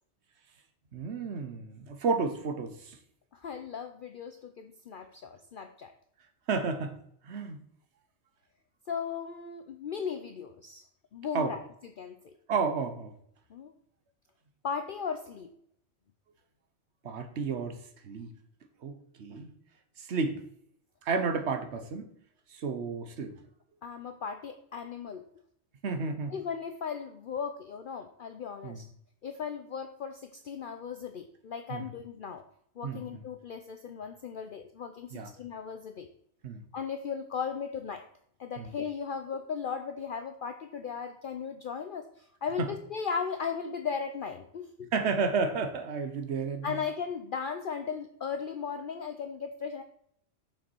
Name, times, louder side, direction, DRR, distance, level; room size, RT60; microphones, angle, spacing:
voice 1, 0.9-3.0 6.5-7.0 7.2-7.6 11.3-11.6 12.5-13.1 17.0-17.8 18.0-18.3 18.8-19.5 20.0-20.4 21.0-22.1 22.5-23.3 25.8-26.3 28.6-28.8 31.7-31.8 32.8-33.0 35.1-35.3 36.4-36.6 38.6-38.7 42.6-42.7 44.9-46.8, right 4 dB, 65° right, 8 dB, 1.2 m, -31 dB
voice 2, 3.3-5.9 8.9-10.8 11.1-11.6 12.0-12.3 13.5-13.7 14.6-15.5 23.8-25.3 26.3-28.8 29.2-32.4 32.8-36.1 36.7-38.0 38.4-44.9 46.6-49.8, left 6 dB, 55° left, 7 dB, 0.7 m, -37 dB
7.0 x 5.8 x 4.5 m, 0.66 s
omnidirectional pair, 1.2 m